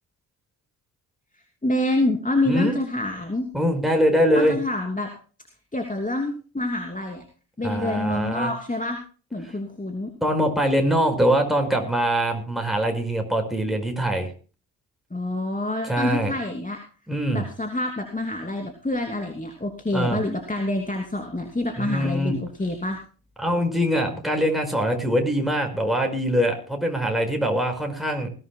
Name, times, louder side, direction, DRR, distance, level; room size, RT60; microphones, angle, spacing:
voice 1, 1.6-3.4 4.3-5.1 5.7-7.2 7.6-9.0 9.3-10.1 15.1-16.8 17.3-23.0, left 1 dB, 15° left, 3 dB, 2.9 m, -27 dB
voice 2, 2.5-2.8 3.5-4.6 7.6-8.5 10.2-14.3 15.9-16.3 17.1-17.4 19.9-20.2 21.8-22.4 23.4-28.3, equal, ahead, 3 dB, 5.1 m, -23 dB
20.5 x 15.5 x 2.2 m, 0.37 s
figure-of-eight pair, 45°, 50 cm